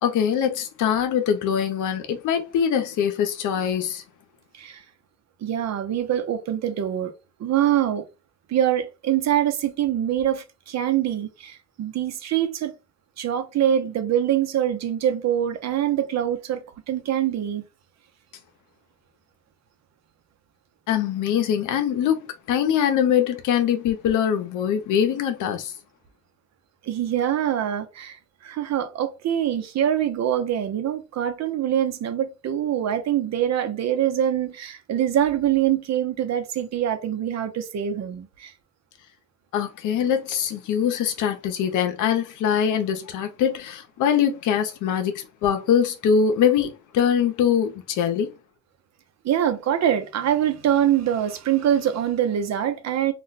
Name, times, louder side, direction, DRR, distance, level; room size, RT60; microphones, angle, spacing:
voice 1, 0.0-4.0 20.9-25.7 39.5-48.3, left 8 dB, 80° left, 0.7 m, -23 dB
voice 2, 5.4-7.1 7.4-8.0 8.5-12.7 13.2-17.6 26.8-38.5 49.2-53.1, right 10 dB, 60° right, 0.7 m, -24 dB
2.4 x 2.1 x 3.9 m
cardioid pair, 90°, 30 cm